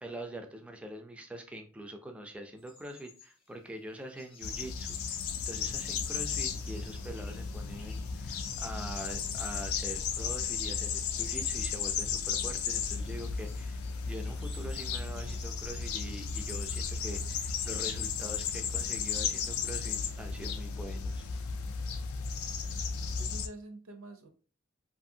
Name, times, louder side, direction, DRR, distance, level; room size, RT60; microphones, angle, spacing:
voice 1, 0.0-5.2 5.5-21.3, right 1 dB, 5° right, 0.3 m, -44 dB
sound 1, 2.6-18.2, left 3 dB, 25° left, 0.7 m, -55 dB
sound 2, 4.4-23.5, left 6 dB, 85° left, 0.4 m, -34 dB
voice 2, 23.0-24.3, right 2 dB, 75° right, 0.6 m, -47 dB
2.6 x 2.5 x 2.7 m
head